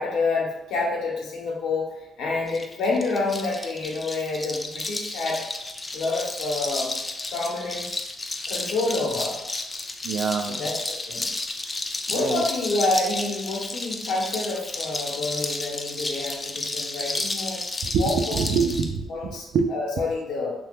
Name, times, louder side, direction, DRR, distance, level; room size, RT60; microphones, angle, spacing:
voice 1, 0.0-5.4 5.9-6.9 7.3-7.9 8.5-9.4 10.5-11.3 12.1-17.6 18.0-18.4 19.1-20.5, left 3 dB, 85° left, -2 dB, 0.8 m, -28 dB
sound 1, 2.5-18.9, left 2 dB, 25° left, 0.3 m, -32 dB
voice 2, 10.0-10.6 12.1-12.4 17.8-19.7, right 5 dB, 70° right, 7 dB, 0.3 m, -25 dB
2.7 x 2.3 x 3.4 m, 0.92 s
cardioid pair, 90°, 0 cm